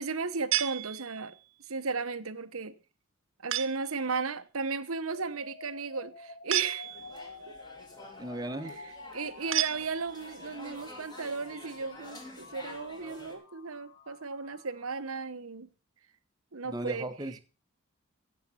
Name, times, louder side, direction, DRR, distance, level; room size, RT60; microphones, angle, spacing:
voice 1, 0.0-1.3 1.7-2.7 3.4-6.9 7.5-7.6 8.7-15.7 16.5-17.1, right 4 dB, 80° right, 1.1 m, -35 dB
sound 1, 0.5-1.5 3.5-4.0 6.5-7.3 9.5-10.4, right 14 dB, 60° right, 0.7 m, -32 dB
sound 2, 5.1-15.1, left 3 dB, 50° left, 1.9 m, -50 dB
sound 3, 6.8-13.3, left 2 dB, 20° left, 2.7 m, -49 dB
voice 2, 8.2-8.7 16.6-17.4, right 1 dB, 20° right, 1.3 m, -36 dB
16.0 x 7.5 x 5.8 m
head